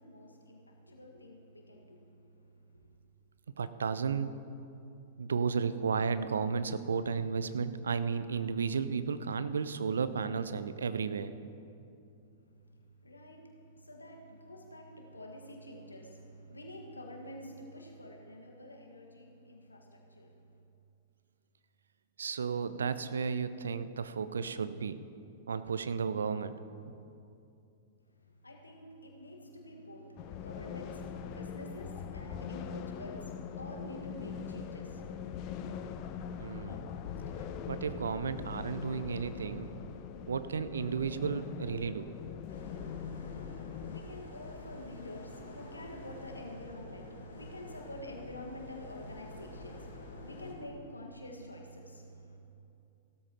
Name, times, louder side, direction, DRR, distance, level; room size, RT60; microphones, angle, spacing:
voice 1, 0.0-2.1 2.7-2.9 13.0-20.3 28.4-35.3 43.5-52.4, left 1 dB, 85° left, 1 dB, 1.6 m, -48 dB
voice 2, 3.6-4.4 5.2-11.3 22.2-25.0 25.5-26.5 36.4-36.9 37.7-39.7 40.3-42.1, right 5 dB, 70° right, 13 dB, 0.5 m, -33 dB
sound 1, 30.2-44.0, left 7 dB, 40° left, 0.7 m, -42 dB
sound 2, 42.5-50.5, left 2 dB, 65° left, 3.0 m, -48 dB
16.0 x 12.5 x 2.9 m, 2.7 s
figure-of-eight pair, 100°, 0 cm